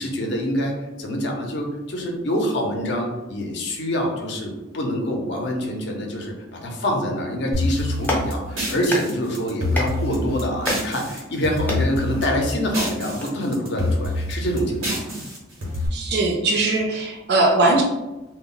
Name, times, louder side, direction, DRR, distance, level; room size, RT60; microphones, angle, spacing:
voice 1, 0.0-15.1, equal, 60° left, 1 dB, 0.5 m, -26 dB
sound 1, 7.5-11.2 11.4-13.3 13.5-15.9, left 1 dB, 85° right, 1.0 m, -27 dB
Clapping, 7.9-13.2, left 1 dB, 10° left, 0.4 m, -32 dB
voice 2, 15.9-17.8, right 2 dB, 55° right, 1 dB, 0.5 m, -20 dB
2.1 x 2.0 x 3.7 m, 1.0 s
head